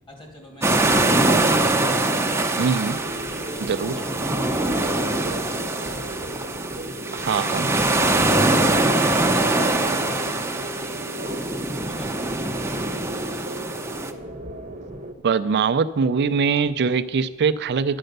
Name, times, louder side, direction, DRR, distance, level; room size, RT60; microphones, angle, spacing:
voice 1, 0.1-2.5 3.2-5.7 8.8-12.7, equal, 20° left, 0 dB, 2.4 m, -44 dB
sound 1, 0.6-14.1, right 2 dB, 10° right, 0.6 m, -23 dB
voice 2, 2.6-3.0 3.6-3.9 7.2-7.7 15.2-18.0, right 5 dB, 50° right, 13 dB, 0.4 m, -22 dB
sound 2, 2.9-15.1, right 1 dB, 35° right, 0.9 m, -36 dB
11.0 x 7.8 x 6.6 m, 1.3 s
head